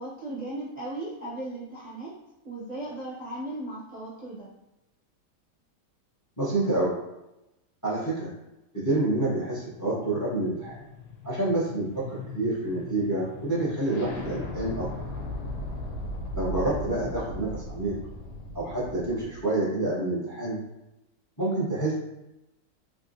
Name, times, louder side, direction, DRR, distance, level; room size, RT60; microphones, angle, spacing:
voice 1, 0.0-2.2 2.4-4.5, right 1 dB, 40° right, -9 dB, 0.6 m, -36 dB
voice 2, 6.4-6.9 7.8-8.3 8.8-10.8 11.2-14.9 16.3-17.9 18.5-20.6 21.4-21.9, right 2 dB, 15° left, -7 dB, 0.6 m, -28 dB
sound 1, 9.5-19.4, left 1 dB, 75° left, 1.3 m, -38 dB
3.4 x 2.8 x 2.6 m, 0.93 s
omnidirectional pair, 1.7 m